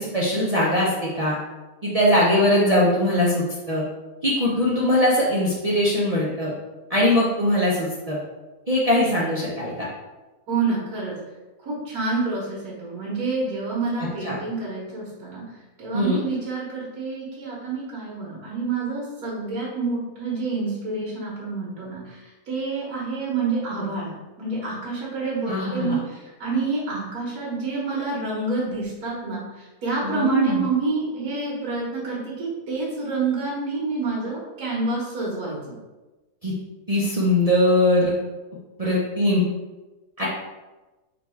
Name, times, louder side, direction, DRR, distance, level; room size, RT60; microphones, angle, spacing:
voice 1, 0.0-1.4 1.8-3.8 4.2-6.5 6.9-8.2 8.7-9.9 14.2-14.4 15.9-16.2 25.5-26.0 30.0-30.6 36.4-36.5 36.9-38.1 38.8-39.5 40.2-40.3, left 1 dB, 55° right, -7 dB, 0.4 m, -21 dB
voice 2, 10.5-11.1 11.6-15.4 15.8-35.8 38.8-39.0, right 3 dB, 90° right, -6 dB, 1.6 m, -28 dB
3.8 x 2.3 x 4.3 m, 1.1 s
omnidirectional pair, 1.6 m